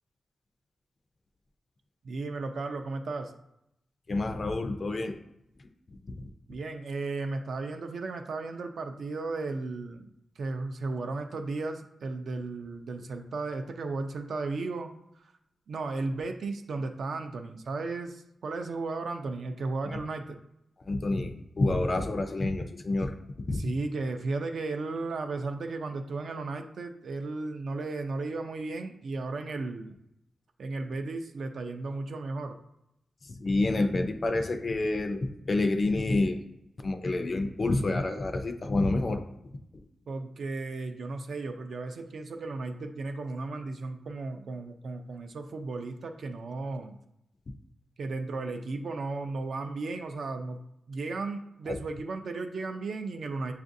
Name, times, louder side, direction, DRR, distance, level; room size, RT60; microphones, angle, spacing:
voice 1, 2.0-3.3 6.5-15.3 15.7-20.4 23.5-30.0 30.6-32.5 40.1-47.0 48.0-50.6 50.9-53.5, right 3 dB, 60° right, 5 dB, 0.4 m, -35 dB
voice 2, 4.1-5.2 6.2-6.3 19.9-20.0 20.9-23.7 33.2-36.4 36.8-39.2 39.7-39.8 51.7-51.8, left 2 dB, 35° left, 7 dB, 0.4 m, -28 dB
7.0 x 2.5 x 2.6 m, 0.81 s
wide cardioid pair, 145°, 0 cm